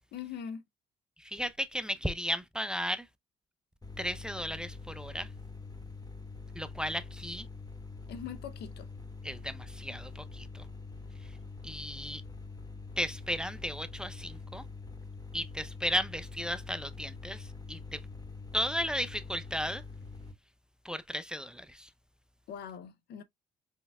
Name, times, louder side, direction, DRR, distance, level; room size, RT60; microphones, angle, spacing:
voice 1, 0.1-0.6 8.1-8.9 22.5-23.2, left 8 dB, 65° left, 0.7 m, -41 dB
voice 2, 1.2-3.1 4.0-5.3 6.5-7.5 9.2-10.6 11.6-12.2 13.0-14.7 15.3-18.0 18.5-19.8 20.8-21.9, equal, 5° right, 0.6 m, -35 dB
sound 1, 3.8-20.3, left 3 dB, 20° left, 1.8 m, -45 dB
4.4 x 3.4 x 2.3 m
hypercardioid pair, 55°, 18 cm